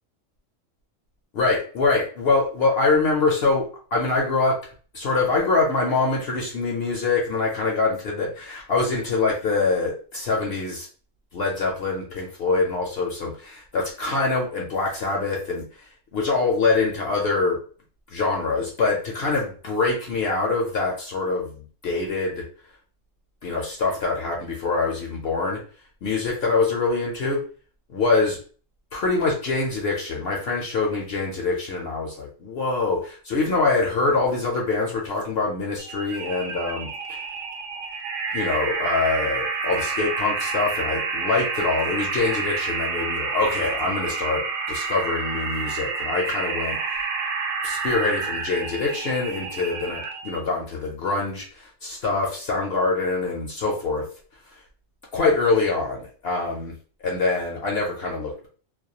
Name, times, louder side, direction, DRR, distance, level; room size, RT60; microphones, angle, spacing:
voice 1, 1.3-4.6 4.9-10.9 11.3-17.6 18.1-22.5 23.4-25.6 26.0-27.4 27.9-28.4 28.9-36.9 38.3-47.1 47.6-54.1 55.1-56.7 57.0-58.5, left 3 dB, 65° left, -1 dB, 0.7 m, -24 dB
sound 1, 35.8-50.4, right 4 dB, 70° right, 0.8 m, -29 dB
2.3 x 2.1 x 2.7 m, 0.41 s
omnidirectional pair, 1.3 m